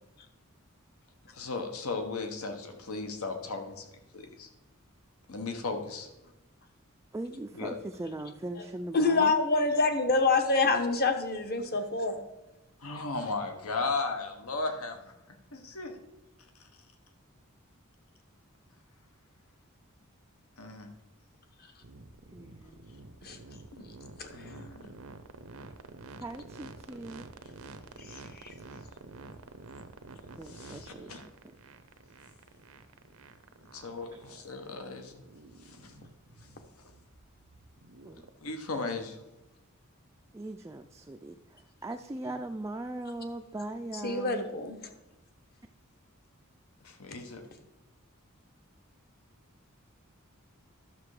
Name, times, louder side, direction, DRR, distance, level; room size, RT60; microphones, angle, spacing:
voice 1, 1.3-3.9 4.1-4.5 5.3-6.1 7.5-7.8 12.8-15.9 16.6-16.7 20.6-20.9 24.3-24.9 30.4-31.2 33.7-35.2 35.6-35.9 36.4-36.5 38.4-39.2 42.2-42.3 46.8-47.4, left 3 dB, 80° left, 6 dB, 1.2 m, -36 dB
voice 2, 7.1-9.3 22.3-22.9 25.6-25.7 26.2-27.3 30.4-31.1 34.1-34.2 38.0-38.6 40.3-44.4, right 2 dB, 15° right, 5 dB, 0.3 m, -40 dB
voice 3, 8.9-12.2 23.2-23.4 23.7-23.9 24.2-24.5 28.0-28.5 44.0-44.8, left 3 dB, 45° left, 7 dB, 1.2 m, -27 dB
sound 1, 21.8-38.3, right 3 dB, 85° right, 0.8 m, -49 dB
11.5 x 6.7 x 4.9 m, 0.96 s
head